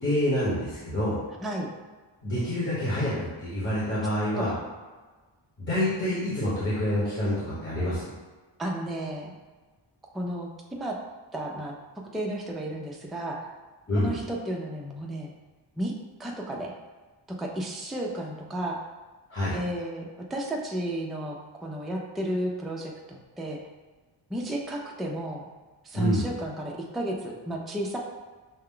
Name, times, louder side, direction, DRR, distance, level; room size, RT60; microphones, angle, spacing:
voice 1, 0.0-1.2 2.2-4.5 5.6-8.1 13.9-14.1 19.3-19.6 25.9-26.2, left 1 dB, 25° left, -10 dB, 1.1 m, -27 dB
voice 2, 8.6-9.3 10.1-11.0 11.3-11.7 12.1-13.5 14.0-15.3 15.8-15.9 16.2-16.7 17.3-18.8 19.5-23.6 24.3-25.5 25.8-28.0, right 1 dB, ahead, 0 dB, 0.4 m, -33 dB
5.7 x 2.2 x 3.7 m, 1.3 s
wide cardioid pair, 150°, 45 cm